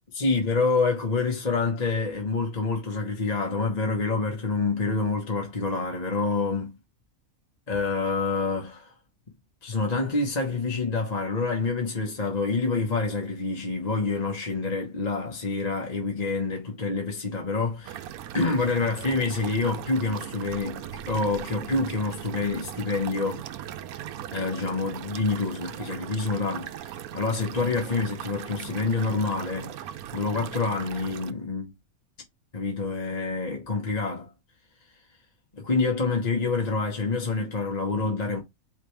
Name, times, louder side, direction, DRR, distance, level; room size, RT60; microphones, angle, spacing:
voice 1, 0.1-6.8 7.7-8.9 9.6-18.1 18.3-23.5 24.3-31.7 32.5-34.3 35.5-38.4, left 3 dB, 30° left, 1.1 m, -27 dB
sound 1, 17.9-31.3, right 10 dB, 80° right, 1.1 m, -39 dB
5.0 x 3.2 x 3.2 m
omnidirectional pair, 1.5 m